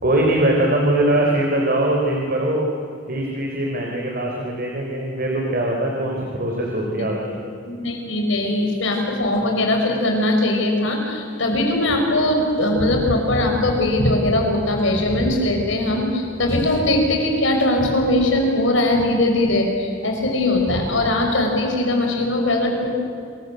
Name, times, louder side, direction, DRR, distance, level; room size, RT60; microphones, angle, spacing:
voice 1, 0.0-2.7 3.1-7.4, right 1 dB, 50° right, 0 dB, 3.6 m, -21 dB
voice 2, 7.7-22.9, left 1 dB, 70° left, 2 dB, 6.1 m, -20 dB
27.0 x 22.5 x 7.9 m, 2.6 s
head